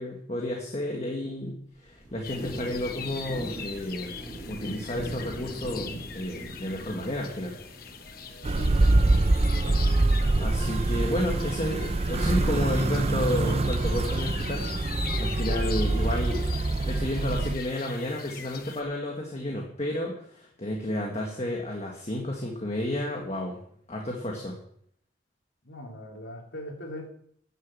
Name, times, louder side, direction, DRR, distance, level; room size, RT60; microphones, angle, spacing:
voice 1, 0.0-4.1 4.5-7.5 10.4-16.5 16.8-23.6 23.9-24.6, left 1 dB, 35° left, 0 dB, 1.6 m, -31 dB
Thunder / Rain, 1.8-10.4, right 1 dB, 5° right, 2.8 m, -42 dB
sound 1, 2.2-18.8, left 7 dB, 50° left, 1.0 m, -42 dB
voice 2, 8.4-9.1 9.6-9.8 25.6-27.1, equal, 75° left, 0 dB, 3.1 m, -40 dB
sound 2, 8.4-17.6, right 2 dB, 35° right, 0.5 m, -25 dB
10.5 x 6.8 x 7.4 m, 0.65 s
head